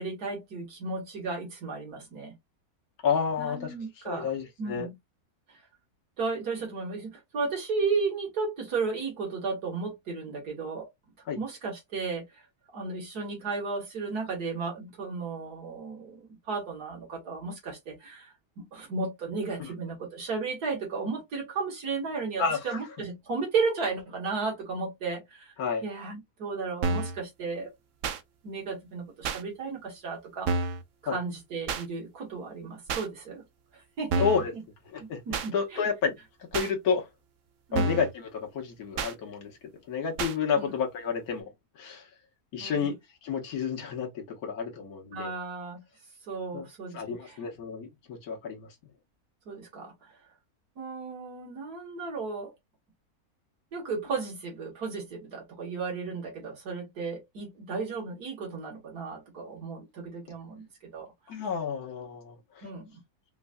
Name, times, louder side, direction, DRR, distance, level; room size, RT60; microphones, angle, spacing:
voice 1, 0.0-2.3 3.4-4.3 4.6-4.9 6.2-10.9 11.4-12.2 12.7-25.5 25.8-27.7 28.4-30.5 31.0-33.4 34.0-34.3 35.0-35.9 37.7-38.0 40.6-40.7 42.6-42.9 45.1-45.8 46.3-47.4 49.5-49.9 50.8-52.5 53.7-60.7 60.9-61.1 62.6-63.0, right 4 dB, 85° right, 2.4 m, -34 dB
voice 2, 3.0-3.7 4.0-4.9 11.3-11.4 22.4-22.8 25.6-25.8 31.0-31.2 34.2-34.5 34.9-36.1 36.5-37.1 37.7-39.5 39.9-41.5 41.7-42.1 42.5-42.9 43.2-45.3 46.5-46.6 46.9-48.7 61.3-62.7, left 6 dB, 70° left, 1.7 m, -30 dB
sound 1, 26.8-27.2 28.0-28.2 29.2-29.4 30.5-30.8 31.7-31.8 32.9-33.1 34.1-34.5 35.3-35.5 36.5-36.7 37.7-38.1 39.0-39.1 40.2-40.4, right 3 dB, 60° right, 0.9 m, -29 dB
5.2 x 2.6 x 2.2 m
omnidirectional pair, 1.6 m